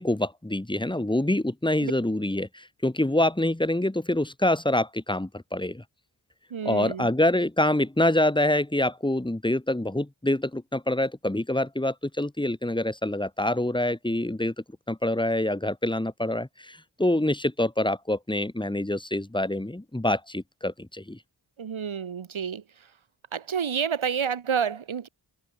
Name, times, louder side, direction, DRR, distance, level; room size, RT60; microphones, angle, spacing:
voice 1, 0.0-5.8 6.6-14.5 14.9-21.2, left 1 dB, 10° left, 1.6 m, -26 dB
voice 2, 6.5-7.1 21.6-22.6 23.3-25.1, right 7 dB, 80° right, 1.8 m, -29 dB
cardioid pair, 50°, 47 cm